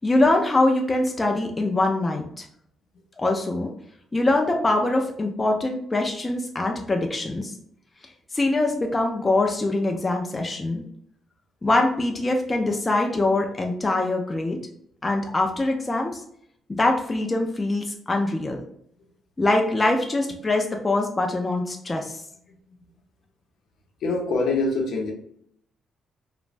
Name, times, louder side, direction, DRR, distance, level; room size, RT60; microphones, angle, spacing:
voice 1, 0.0-2.5 3.2-3.7 4.1-7.5 8.3-10.8 11.6-14.6 15.0-16.2 16.8-18.6 19.4-22.2, left 2 dB, 20° left, 2 dB, 0.4 m, -23 dB
voice 2, 24.0-25.1, left 3 dB, 70° left, 1 dB, 0.7 m, -24 dB
3.2 x 2.0 x 2.5 m, 0.70 s
cardioid pair, 90°, 0 cm